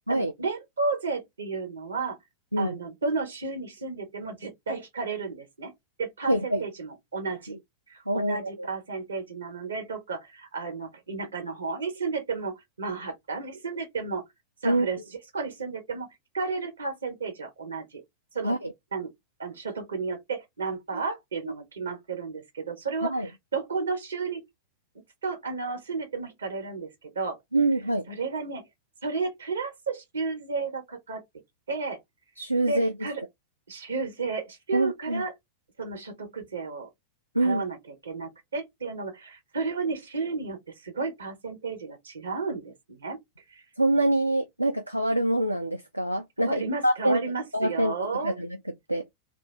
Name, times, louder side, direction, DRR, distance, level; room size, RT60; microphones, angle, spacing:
voice 1, 0.1-2.2 2.6-5.7 6.0-7.6 7.9-14.2 14.6-15.0 15.3-16.1 16.3-18.0 18.3-18.6 18.9-19.1 19.4-24.4 25.2-27.4 28.1-28.6 29.0-31.2 31.7-32.0 32.7-33.2 33.7-35.3 35.8-36.9 37.4-37.8 38.0-43.2 43.5-43.6 46.4-48.4, right 4 dB, 70° right, 1.0 m, -32 dB
voice 2, 6.3-6.6 8.1-8.7 14.6-14.9 18.4-18.7 20.9-21.0 21.4-21.5 23.1-23.3 27.5-28.1 32.4-32.9 34.7-35.2 37.3-37.6 43.8-47.2 47.5-48.5 48.9-49.0, right 1 dB, 90° right, 0.3 m, -25 dB
2.6 x 2.6 x 3.2 m
figure-of-eight pair, 90°, 0 cm